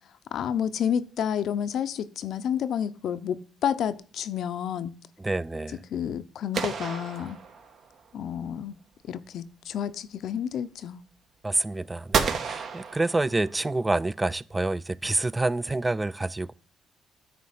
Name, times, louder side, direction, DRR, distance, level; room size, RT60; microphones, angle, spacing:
voice 1, 0.3-4.9 5.9-7.4 8.1-8.7 9.1-11.0, left 9 dB, 70° left, 0.5 m, -30 dB
voice 2, 5.2-5.8 11.4-16.5, right 2 dB, 15° right, 0.3 m, -27 dB
sound 1, 6.5-8.0 12.1-13.7, right 6 dB, 60° right, 1.0 m, -30 dB
9.4 x 3.3 x 6.5 m
cardioid pair, 90°, 0 cm